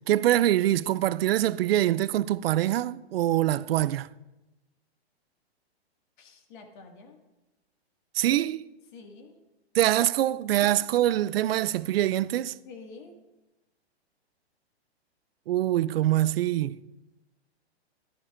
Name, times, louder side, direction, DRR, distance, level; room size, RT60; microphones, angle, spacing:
voice 1, 0.1-4.1 8.2-8.6 9.7-12.5 15.5-16.8, right 13 dB, 65° right, 0.4 m, -24 dB
voice 2, 6.2-7.2 8.9-9.4 10.6-11.0 12.4-13.2, left 4 dB, 45° left, 1.9 m, -48 dB
14.0 x 12.5 x 2.5 m
hypercardioid pair, 150°, 33 cm